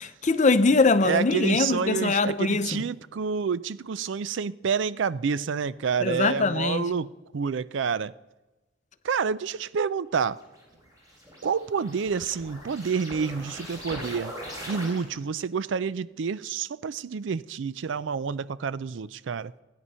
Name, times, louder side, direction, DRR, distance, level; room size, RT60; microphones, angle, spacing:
voice 1, 0.0-2.9 6.0-6.8, left 3 dB, 40° left, 0.7 m, -22 dB
voice 2, 1.0-8.1 9.0-10.4 11.4-14.3 14.7-19.5, right 6 dB, 70° right, 0.4 m, -28 dB
sound 1, 10.4-15.4, equal, 20° right, 4.1 m, -41 dB
16.0 x 9.7 x 5.5 m
head